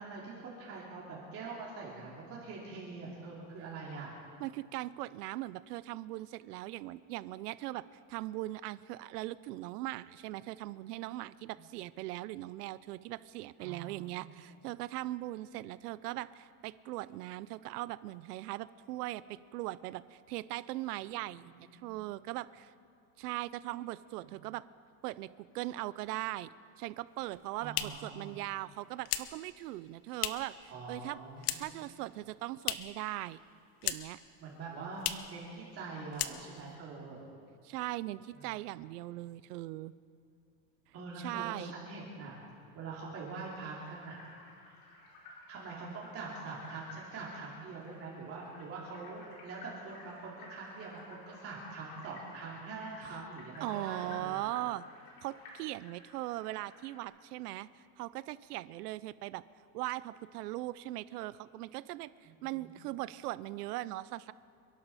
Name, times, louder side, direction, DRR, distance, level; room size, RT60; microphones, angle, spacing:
voice 1, 0.0-4.2 13.6-14.6 21.4-21.9 27.6-28.4 30.7-31.7 34.4-37.3 38.3-38.5 40.9-42.4 42.7-44.2 44.7-44.8 45.5-54.5 62.2-62.8, right 4 dB, 30° right, -5 dB, 2.7 m, -44 dB
voice 2, 4.4-7.8 8.1-22.7 23.2-24.6 25.0-26.5 26.8-31.2 31.6-33.4 33.8-34.2 37.6-39.9 41.2-41.7 53.0-53.1 53.6-54.9 55.2-57.7 58.0-59.4 59.7-64.3, right 17 dB, 80° right, 17 dB, 0.7 m, -40 dB
sound 1, 27.2-30.6 30.9-31.9 32.1-33.1 33.3-34.3 34.5-34.6 34.9-35.4 35.7-35.9 36.1-36.8, left 12 dB, 75° left, 1.0 m, -37 dB
sound 2, 43.8-57.0, left 2 dB, 55° left, 4.8 m, -54 dB
28.0 x 11.5 x 4.2 m, 2.6 s
supercardioid pair, 160°, 46 cm